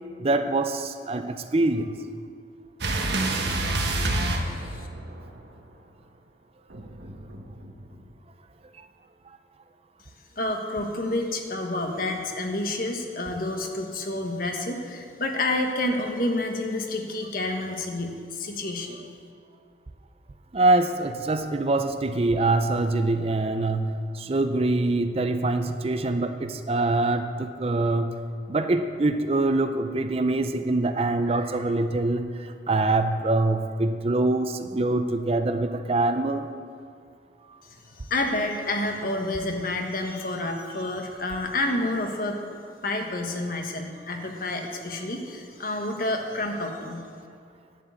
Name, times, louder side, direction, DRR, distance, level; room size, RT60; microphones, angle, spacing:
voice 1, 0.2-2.0 8.8-8.9 20.5-28.1 28.5-36.5, right 2 dB, 35° right, 8 dB, 0.5 m, -24 dB
sound 1, 2.8-5.3 6.7-8.0, right 2 dB, 70° right, 1.2 m, -27 dB
voice 2, 3.9-4.9 10.4-19.0 37.9-42.4 42.8-47.0, left 2 dB, 50° left, 3 dB, 1.3 m, -29 dB
11.0 x 7.3 x 8.2 m, 2.3 s
head